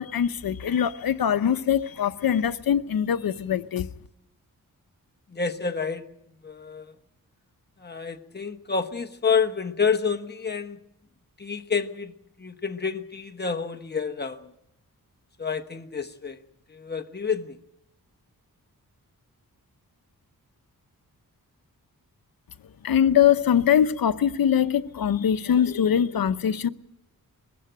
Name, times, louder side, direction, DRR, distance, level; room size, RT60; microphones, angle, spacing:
voice 1, 0.0-3.9 22.8-26.7, left 9 dB, 75° left, 0.8 m, -22 dB
voice 2, 5.3-6.1 6.4-6.9 7.8-10.8 11.4-14.5 15.4-16.4 16.7-17.6, left 5 dB, 30° left, 1.1 m, -29 dB
21.5 x 15.0 x 9.0 m
wide cardioid pair, 150°, 36 cm